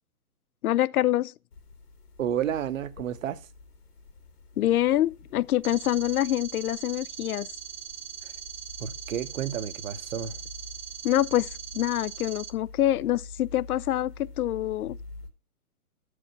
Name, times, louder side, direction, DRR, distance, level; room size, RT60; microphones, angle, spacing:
voice 1, 0.6-1.3 4.6-7.5 11.0-15.0, left 13 dB, 75° left, 0.6 m, -26 dB
sound 1, 1.5-15.3, left 3 dB, 90° left, 2.3 m, -47 dB
voice 2, 2.2-3.5 8.2-8.3 8.8-10.4, right 9 dB, 60° right, 0.9 m, -31 dB
sound 2, 5.6-12.5, right 8 dB, 35° right, 0.5 m, -41 dB
7.8 x 5.0 x 6.9 m
hypercardioid pair, 170°, 45 cm